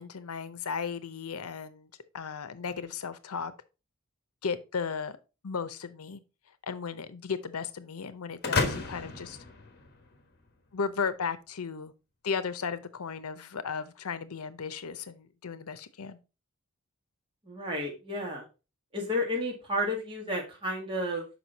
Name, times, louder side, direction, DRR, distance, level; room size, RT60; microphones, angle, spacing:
voice 1, 0.0-1.9 2.1-3.5 4.4-5.2 5.4-6.2 6.6-9.4 10.7-11.9 12.2-16.2, left 5 dB, 80° left, 0.7 m, -35 dB
sound 1, 8.4-10.4, left 3 dB, 45° left, 1.2 m, -32 dB
voice 2, 17.5-18.4 18.9-21.3, left 1 dB, 25° right, 1.8 m, -32 dB
6.2 x 5.4 x 4.0 m
head